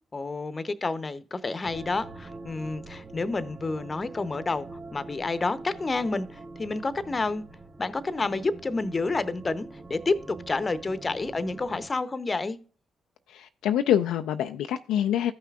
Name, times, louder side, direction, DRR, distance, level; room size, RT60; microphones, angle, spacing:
voice 1, 0.1-4.7 4.9-7.4 7.8-12.6, left 3 dB, 35° left, 0.8 m, -29 dB
sound 1, 1.6-11.9, right 3 dB, 50° right, 1.9 m, -44 dB
voice 2, 13.3-15.3, left 10 dB, 75° left, 0.3 m, -25 dB
14.0 x 5.6 x 2.4 m
hypercardioid pair, 45°, 0 cm